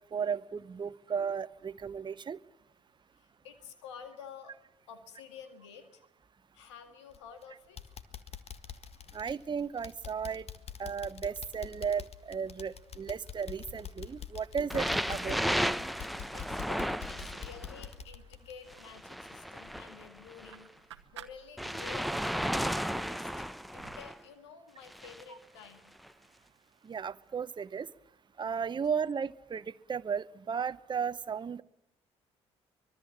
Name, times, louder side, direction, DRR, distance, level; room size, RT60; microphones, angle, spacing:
voice 1, 0.1-2.4 9.1-10.4 10.8-15.5 26.8-27.9 28.4-29.6 29.9-31.6, right 6 dB, 30° right, 14 dB, 0.8 m, -35 dB
voice 2, 3.2-4.5 4.9-6.0 6.5-7.8 16.3-20.7 21.1-22.1 22.5-23.5 23.7-25.9, left 7 dB, 85° left, 9 dB, 1.9 m, -50 dB
sound 1, 7.1-7.4 7.8-19.3 19.7-19.8 20.3-20.4, left 9 dB, 45° left, 1.7 m, -46 dB
sound 2, 12.7-13.8 14.3-15.9 16.3-20.0 20.5-21.9 22.1-24.0, right 11 dB, 90° right, 1.0 m, -56 dB
sound 3, 14.7-17.8 18.7-20.6 21.6-24.2 24.9-25.2 26.0-26.1, equal, ahead, 1.0 m, -34 dB
25.0 x 21.5 x 7.3 m, 0.82 s
hypercardioid pair, 50°, 14 cm